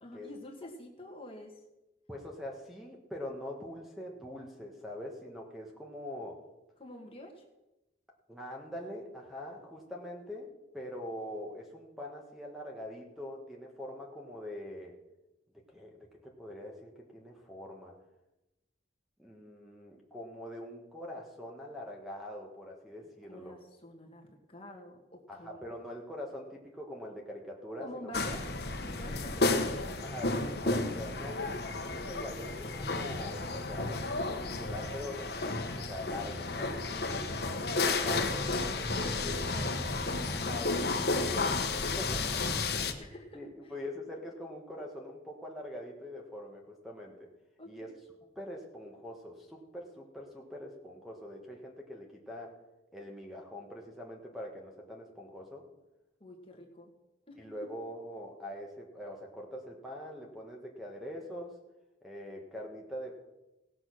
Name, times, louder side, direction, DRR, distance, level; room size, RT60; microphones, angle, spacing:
voice 1, 0.0-1.5 6.8-7.4 23.3-25.6 27.8-28.5 28.8-29.9 36.9-37.8 39.0-40.2 42.6-43.7 47.6-47.9 56.2-56.9 57.3-57.7, left 1 dB, 30° left, 1 dB, 1.7 m, -48 dB
voice 2, 2.1-6.4 8.3-14.9 15.7-17.9 19.2-23.5 25.3-28.1 30.0-34.1 34.3-36.8 37.8-39.3 40.3-47.3 47.6-47.9 48.3-52.5 52.9-55.6 57.4-61.5 62.0-63.2, left 1 dB, ahead, 0 dB, 1.4 m, -43 dB
sound 1, 28.1-42.9, left 3 dB, 55° left, 1.1 m, -32 dB
17.5 x 6.3 x 6.3 m, 0.98 s
head